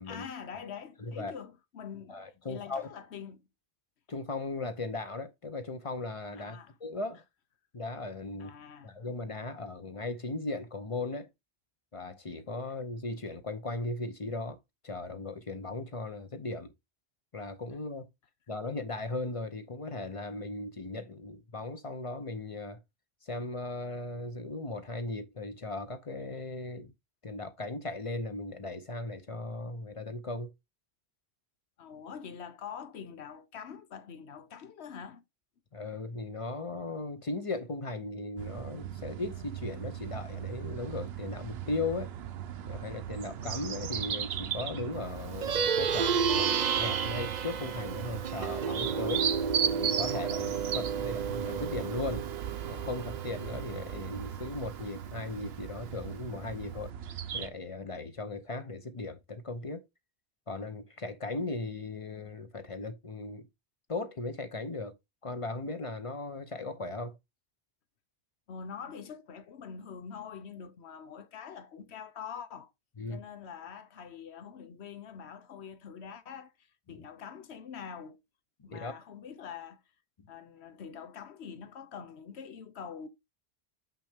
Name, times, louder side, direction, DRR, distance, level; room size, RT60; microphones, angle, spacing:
voice 1, 0.0-3.5 6.3-6.7 8.4-8.9 31.8-35.2 68.5-72.7 73.1-78.2 78.6-79.8 80.3-83.1, left 7 dB, 80° left, 1.1 m, -45 dB
voice 2, 1.0-1.3 2.1-2.9 4.1-7.2 7.7-8.5 8.8-11.3 11.9-14.6 14.8-16.7 17.3-18.1 18.5-22.8 23.2-26.9 27.2-30.5 35.7-42.1 42.7-49.3 49.8-52.3 52.6-56.9 57.3-59.8 60.5-63.5 63.9-65.0 65.2-67.2 73.0-73.2 76.9-77.1 78.7-78.9, left 2 dB, 35° left, 0.8 m, -37 dB
sound 1, 38.4-57.5, right 9 dB, 70° right, 0.9 m, -37 dB
Plucked string instrument, 45.3-55.0, right 6 dB, 50° right, 0.6 m, -32 dB
5.8 x 5.8 x 3.6 m
omnidirectional pair, 1.1 m